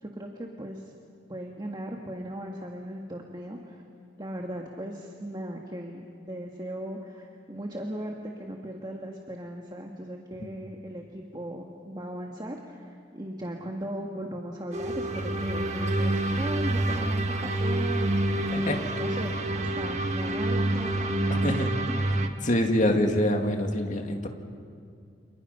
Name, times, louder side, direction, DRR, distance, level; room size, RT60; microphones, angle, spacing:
voice 1, 0.0-0.9 1.3-3.8 4.2-22.1, equal, 25° right, 1 dB, 1.6 m, -38 dB
sound 1, 14.7-22.3, right 1 dB, 40° right, 1.6 m, -27 dB
voice 2, 18.5-18.8 21.4-21.8 22.4-24.3, left 1 dB, 45° left, 3 dB, 2.2 m, -25 dB
29.5 x 27.5 x 5.6 m, 2.3 s
head